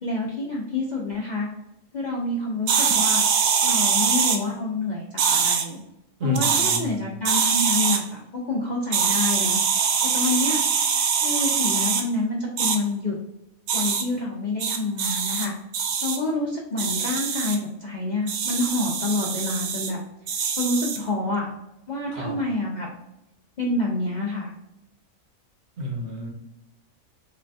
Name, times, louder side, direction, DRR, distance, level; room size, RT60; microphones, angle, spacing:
voice 1, 0.0-1.5 1.9-3.2 3.6-5.8 6.2-10.6 11.2-13.1 13.7-15.5 16.0-20.0 20.3-21.5 21.9-22.9 23.6-24.5, left 2 dB, 60° left, -3 dB, 0.4 m, -28 dB
sound 1, 2.7-4.4 5.2-5.6 6.3-6.8 7.2-8.0 8.9-12.0 12.6-12.8 13.7-14.0 14.6-15.5 15.7-16.2 16.8-17.6 18.3-19.9 20.3-21.0, right 6 dB, 85° right, 1.0 m, -23 dB
voice 2, 6.2-7.1 22.1-22.4 25.8-26.3, left 1 dB, 60° right, 1 dB, 1.1 m, -30 dB
3.9 x 2.2 x 2.5 m, 0.89 s
omnidirectional pair, 1.4 m